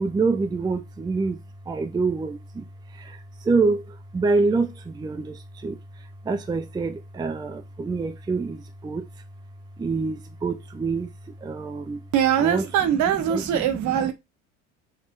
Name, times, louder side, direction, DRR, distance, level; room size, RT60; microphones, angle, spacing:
voice 1, 0.0-1.4 1.7-2.6 3.0-3.2 3.5-3.8 4.1-5.8 6.3-8.6 8.8-9.0 9.8-11.1 11.4-12.0 12.4-12.6 13.3-13.6, right 4 dB, 10° right, 0.5 m, -26 dB
voice 2, 12.1-14.1, right 9 dB, 50° right, 1.0 m, -22 dB
5.0 x 3.5 x 2.4 m
hypercardioid pair, 65°, 37 cm